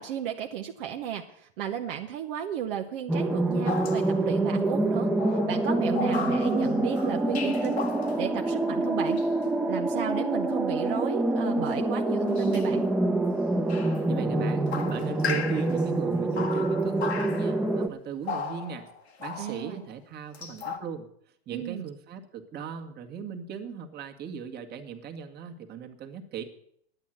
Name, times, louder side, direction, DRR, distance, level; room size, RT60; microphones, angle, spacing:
voice 1, 0.0-7.9 8.2-9.2 9.7-12.8 19.4-19.8 21.5-21.9, right 10 dB, 60° right, 3 dB, 1.1 m, -34 dB
sound 1, 3.1-17.9, right 2 dB, 5° right, 1.0 m, -26 dB
sound 2, 3.6-4.4 5.2-8.4 9.2-9.3 12.3-12.7 13.7-14.1 14.7-15.9 16.4-17.7 18.2-19.8 20.3-20.8, left 6 dB, 90° left, 2.0 m, -36 dB
voice 2, 14.1-18.9 19.2-21.1 21.5-26.4, right 7 dB, 30° right, 4 dB, 1.7 m, -38 dB
10.5 x 8.6 x 7.7 m, 0.68 s
hypercardioid pair, 110°, 31 cm